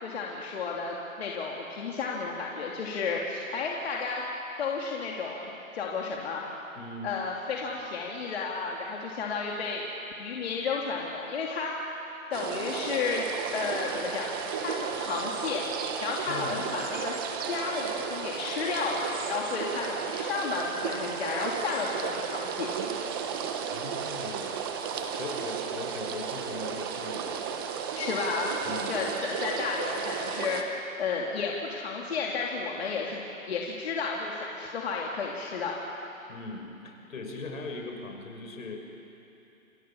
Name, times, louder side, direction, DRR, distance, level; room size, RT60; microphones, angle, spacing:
voice 1, 0.0-4.2 4.6-6.4 7.0-9.8 10.2-11.7 12.3-13.3 13.5-14.3 14.6-15.6 16.0-22.7 27.9-28.5 28.9-33.2 33.5-35.8, left 4 dB, 45° left, -2 dB, 2.8 m, -32 dB
voice 2, 6.7-7.1 16.2-16.6 23.7-24.6 24.9-27.4 28.6-29.1 36.3-38.8, left 3 dB, 70° left, 3 dB, 5.7 m, -40 dB
sound 1, 12.3-30.6, right 7 dB, 15° right, 1.0 m, -34 dB
28.5 x 24.0 x 7.1 m, 2.9 s
hypercardioid pair, 160°, 42 cm